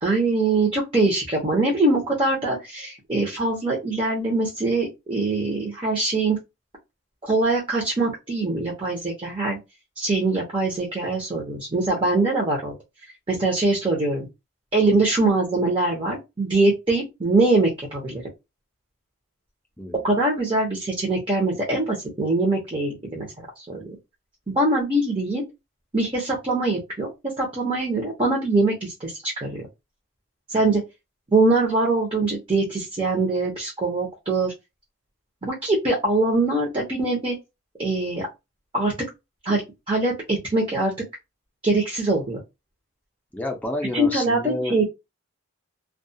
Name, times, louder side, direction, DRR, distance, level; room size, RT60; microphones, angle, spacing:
voice 1, 0.0-6.4 7.2-9.6 10.0-12.7 13.3-14.3 14.7-18.2 20.0-23.3 23.6-23.9 24.5-25.4 25.9-29.6 30.5-30.8 31.3-34.5 35.4-37.4 37.8-38.3 38.7-38.9 39.4-39.6 39.9-40.9 41.6-42.4 43.9-44.9, right 2 dB, 25° right, 0.7 m, -23 dB
voice 2, 43.3-44.9, left 1 dB, 10° left, 0.5 m, -29 dB
2.3 x 2.3 x 2.6 m
head